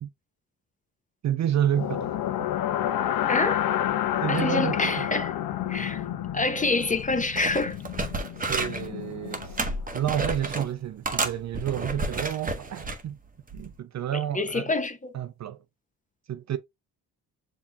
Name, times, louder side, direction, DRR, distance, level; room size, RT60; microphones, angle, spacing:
voice 1, 1.2-2.1 4.2-5.1 8.5-9.6 9.9-13.2 13.5-14.7 15.1-15.6 16.3-16.6, right 10 dB, 40° right, 0.5 m, -30 dB
sound 1, 1.7-9.7, left 11 dB, 55° left, 0.6 m, -30 dB
voice 2, 3.3-3.6 4.3-5.3 5.7-6.0 6.3-7.8 14.3-15.1, left 3 dB, 20° left, 0.8 m, -26 dB
sound 2, 6.9-7.1 7.3-8.9 9.3-10.7 11.0-13.0 13.5-13.7, right 2 dB, 20° right, 1.0 m, -31 dB
7.0 x 2.9 x 2.2 m
hypercardioid pair, 55°, 42 cm